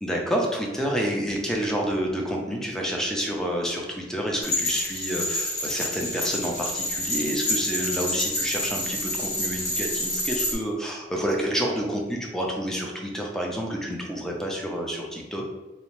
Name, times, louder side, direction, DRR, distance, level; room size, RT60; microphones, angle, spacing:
voice 1, 0.0-15.4, equal, 5° left, -1 dB, 0.4 m, -29 dB
sound 1, 4.4-10.5, left 1 dB, 40° left, 1.0 m, -28 dB
2.7 x 2.0 x 3.0 m, 1.1 s
head